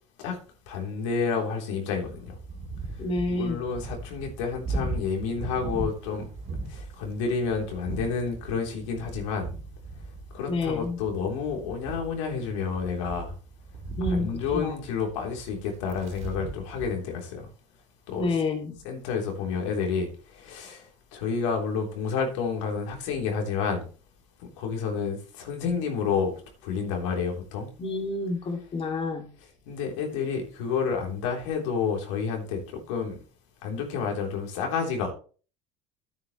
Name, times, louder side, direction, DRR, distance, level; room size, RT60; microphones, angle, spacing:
voice 1, 0.7-2.4 3.3-6.3 6.7-9.5 10.3-13.3 14.1-17.5 18.1-18.3 18.8-23.9 24.6-26.3 26.6-27.7 29.7-33.2 33.6-35.1, left 5 dB, 80° left, 3.5 m, -30 dB
sound 1, 2.0-16.9, right 2 dB, 50° right, 3.6 m, -38 dB
voice 2, 3.0-3.6 10.5-11.0 14.0-14.3 14.5-14.7 18.2-18.8 27.8-29.3, left 3 dB, 35° left, 2.4 m, -28 dB
11.0 x 9.5 x 3.2 m
hypercardioid pair, 85°, 16 cm